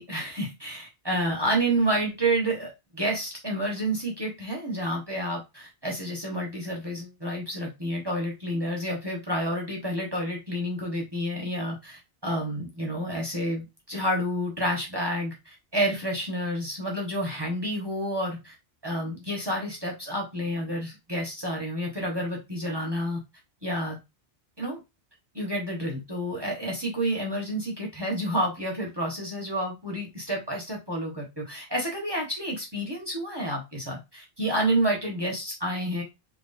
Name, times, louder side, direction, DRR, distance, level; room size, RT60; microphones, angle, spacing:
voice 1, 0.0-18.5 18.8-23.2 23.6-24.0 24.6-24.8 25.3-36.0, right 1 dB, 20° right, -1 dB, 1.2 m, -29 dB
3.8 x 3.0 x 4.1 m, 0.23 s
omnidirectional pair, 1.1 m